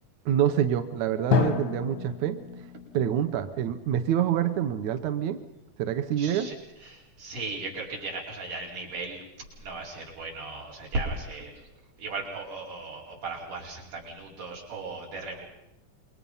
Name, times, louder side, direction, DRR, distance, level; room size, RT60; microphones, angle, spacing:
voice 1, 0.3-2.4 2.9-5.4 5.8-6.5, right 10 dB, 70° right, 8 dB, 2.1 m, -26 dB
Drum, 1.3-5.0, left 6 dB, 60° left, 0.9 m, -31 dB
voice 2, 6.2-6.5 6.8-9.2 9.6-11.6 12.0-15.5, right 3 dB, 85° right, -3 dB, 6.6 m, -36 dB
27.5 x 23.0 x 5.6 m, 0.90 s
omnidirectional pair, 3.6 m